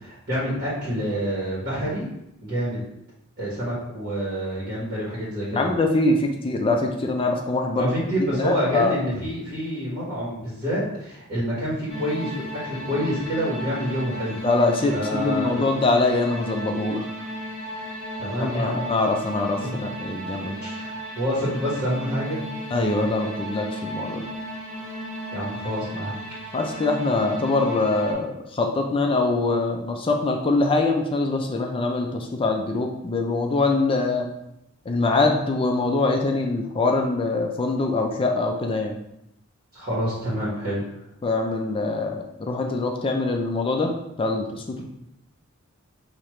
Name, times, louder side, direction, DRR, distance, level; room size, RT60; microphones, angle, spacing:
voice 1, 0.0-2.1 2.4-2.8 3.4-5.7 7.8-12.3 12.6-14.4 14.9-15.5 18.2-18.8 19.6-19.7 20.6-22.4 25.3-26.1 39.7-40.8, equal, 45° right, -8 dB, 1.6 m, -27 dB
voice 2, 5.5-7.9 8.2-9.0 14.4-17.1 18.4-20.6 22.7-24.3 26.5-34.3 34.9-39.0 41.2-43.9 44.2-44.8, left 3 dB, 25° left, 2 dB, 0.4 m, -23 dB
sound 1, 11.9-28.1, equal, 20° right, 1.6 m, -35 dB
5.1 x 2.9 x 3.1 m, 0.81 s
head